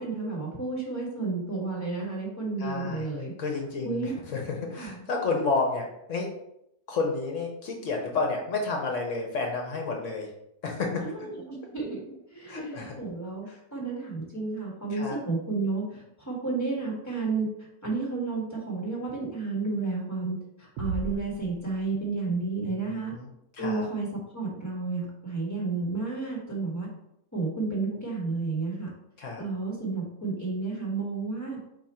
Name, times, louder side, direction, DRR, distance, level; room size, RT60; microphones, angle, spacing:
voice 1, 0.0-3.3 3.8-4.1 4.7-5.1 11.0-12.0 12.3-13.5 13.7-17.5 17.8-23.1 23.6-24.1 24.3-26.9 27.3-28.9 29.4-31.6, right 3 dB, 10° left, -4 dB, 1.3 m, -31 dB
voice 2, 2.6-3.1 3.4-6.3 6.9-10.3 10.6-11.3 12.5-13.0 13.5-13.6 14.9-15.2 22.9-23.3 23.5-23.9 29.2-29.4, left 3 dB, 60° left, 1 dB, 1.0 m, -31 dB
sound 1, 20.8-22.5, right 4 dB, 80° right, 1.2 m, -37 dB
4.9 x 2.5 x 4.2 m, 0.79 s
omnidirectional pair, 1.6 m